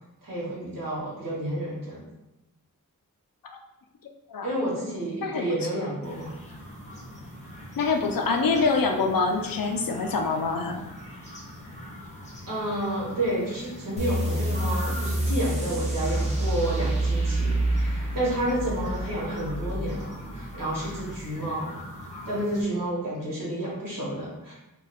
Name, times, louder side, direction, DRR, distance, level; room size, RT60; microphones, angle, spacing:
voice 1, 0.2-2.0 4.4-6.3 12.4-21.8 22.2-24.5, right 1 dB, 65° right, -7 dB, 1.2 m, -30 dB
sound 1, 6.0-22.6, equal, 20° left, 0.8 m, -43 dB
voice 2, 7.8-10.8, left 4 dB, 75° left, 4 dB, 0.5 m, -25 dB
sound 2, 14.0-21.1, right 1 dB, 20° right, 0.7 m, -28 dB
2.6 x 2.3 x 4.0 m, 0.96 s
wide cardioid pair, 65°, 35 cm